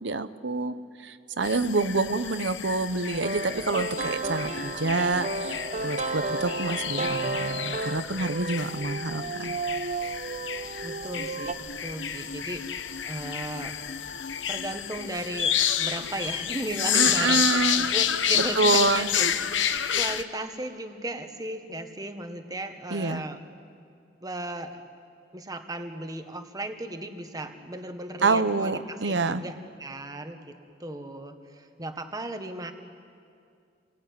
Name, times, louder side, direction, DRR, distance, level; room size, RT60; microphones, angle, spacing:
voice 1, 0.0-9.6 16.9-17.9 18.3-19.1 22.9-23.2 28.2-29.4, right 3 dB, 75° right, 11 dB, 1.0 m, -27 dB
sound 1, 1.4-20.2, left 9 dB, 85° left, 1.0 m, -30 dB
sound 2, 3.1-11.5, right 3 dB, 40° right, 0.9 m, -33 dB
voice 2, 10.8-13.7 14.5-23.4 24.2-24.8 25.3-30.5 30.8-32.7, right 1 dB, 20° right, 6 dB, 1.5 m, -36 dB
28.5 x 21.0 x 9.5 m, 2.4 s
head